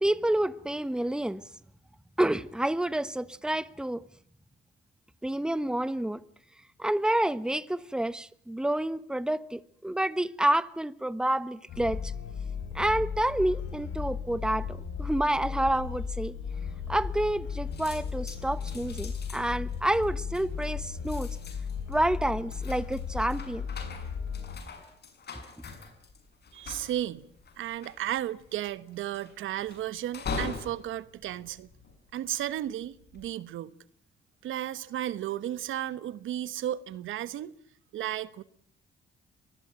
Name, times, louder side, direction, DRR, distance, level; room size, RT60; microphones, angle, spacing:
voice 1, 0.0-1.4 2.2-4.0 5.2-6.2 6.8-12.1 12.7-16.3 16.9-21.4 21.9-23.7, right 1 dB, 5° right, 1.1 m, -29 dB
sound 1, 11.7-24.6, left 6 dB, 75° left, 7.6 m, -36 dB
sound 2, 16.9-17.5 17.7-32.3 32.8-33.3, left 4 dB, 55° left, 7.0 m, -43 dB
voice 2, 26.5-27.3 27.6-31.7 32.1-33.7 34.4-37.5 37.9-38.4, right 12 dB, 80° right, 1.3 m, -34 dB
24.0 x 19.5 x 9.0 m
cardioid pair, 90°, 20 cm